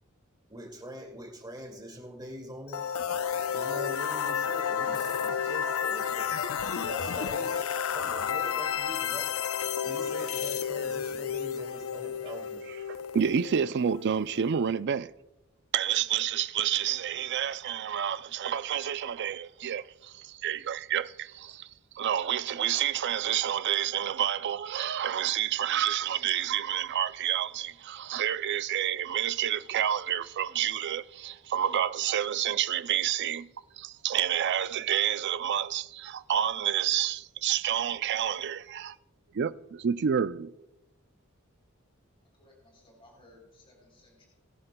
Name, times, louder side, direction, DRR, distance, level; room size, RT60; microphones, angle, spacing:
voice 1, 0.5-2.8 3.5-6.4 6.9-9.3 9.8-12.6, right 1 dB, 20° right, 2.2 m, -43 dB
sound 1, 2.7-14.5, left 7 dB, 80° left, 0.5 m, -31 dB
voice 2, 13.1-15.1 15.7-21.7 22.0-33.5 33.8-39.0 39.3-40.5, right 9 dB, 55° right, 0.4 m, -29 dB
voice 3, 42.3-44.3, left 2 dB, 25° left, 3.5 m, -58 dB
20.5 x 11.0 x 2.2 m
head